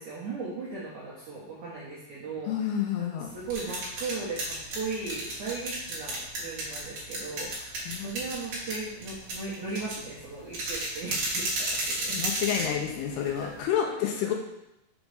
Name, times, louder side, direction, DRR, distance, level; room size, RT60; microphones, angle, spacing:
voice 1, 0.0-12.2 13.2-13.5 13.8-13.9 14.2-14.3, right 4 dB, 75° right, -7 dB, 1.7 m, -37 dB
voice 2, 2.5-3.3 7.9-8.1 12.1-14.3, left 9 dB, 85° left, 2 dB, 2.5 m, -29 dB
sound 1, 3.3-13.6, right 2 dB, 55° right, 1.8 m, -34 dB
6.3 x 5.1 x 3.4 m, 0.89 s
omnidirectional pair, 5.0 m